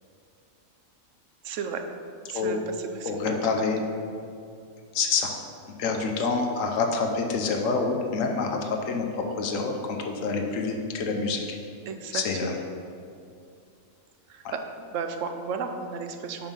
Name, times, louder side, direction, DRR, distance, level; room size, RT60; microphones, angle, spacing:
voice 1, 1.4-1.8 2.3-3.4 3.8-3.9 11.9-12.6 14.3-16.5, right 5 dB, 70° right, 6 dB, 0.9 m, -34 dB
voice 2, 3.1-3.8 4.9-5.3 5.8-11.6 12.1-12.5 14.4-14.5, left 4 dB, 70° left, 2 dB, 1.0 m, -27 dB
5.5 x 4.5 x 5.6 m, 2.5 s
omnidirectional pair, 1.5 m